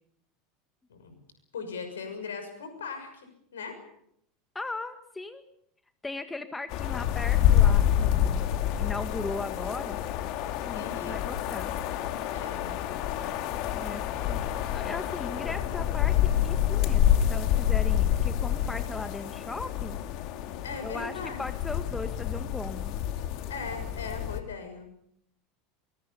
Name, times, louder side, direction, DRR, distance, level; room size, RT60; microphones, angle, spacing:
voice 1, 1.5-3.8 10.7-11.5 12.3-12.8 20.6-21.4 23.5-24.9, left 5 dB, 75° left, 8 dB, 6.2 m, -39 dB
voice 2, 4.6-5.4 6.0-8.5 8.8-10.0 10.6-11.7 13.7-14.0 14.3-14.4 14.7-20.0 20.8-21.1 21.4-23.0, left 3 dB, 15° left, 9 dB, 2.0 m, -38 dB
Winter windy forest, 6.7-24.4, left 11 dB, 55° left, 2.3 m, -27 dB
24.0 x 22.0 x 7.0 m, 0.72 s
figure-of-eight pair, 80°, 0 cm